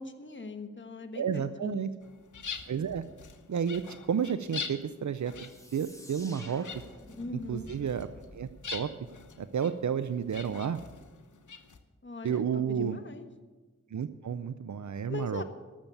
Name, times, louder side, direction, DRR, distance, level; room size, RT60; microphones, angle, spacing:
voice 1, 0.0-2.0 7.2-7.7 12.0-13.3 15.1-15.4, left 3 dB, 40° left, 6 dB, 1.3 m, -40 dB
voice 2, 1.2-1.9 2.7-3.0 3.5-3.8 4.1-5.3 5.7-6.7 7.5-8.1 8.3-8.9 9.4-10.8 12.2-13.0 13.9-15.4, right 7 dB, 75° right, 12 dB, 0.5 m, -31 dB
sound 1, 2.0-11.8, left 5 dB, 90° left, 0.9 m, -44 dB
sound 2, 5.4-10.0, left 1 dB, 10° left, 2.0 m, -51 dB
12.5 x 7.1 x 9.2 m, 1.2 s
wide cardioid pair, 50°, 29 cm